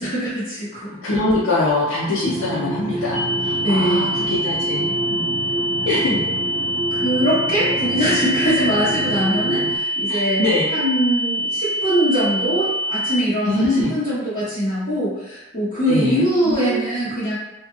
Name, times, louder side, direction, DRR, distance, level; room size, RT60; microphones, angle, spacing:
voice 1, 0.0-1.0 3.0-3.1 3.5-4.1 6.9-10.4 10.7-17.3, equal, 35° left, -15 dB, 1.1 m, -22 dB
voice 2, 1.0-5.4 5.9-6.2 9.3-9.4 10.1-10.7 13.4-14.0 15.9-16.9, left 2 dB, 70° left, -7 dB, 0.5 m, -23 dB
sound 1, 2.2-9.8, right 2 dB, 50° right, 0.4 m, -28 dB
sound 2, 3.1-13.1, right 1 dB, 10° left, 1.0 m, -25 dB
2.7 x 2.2 x 2.4 m, 1.0 s
head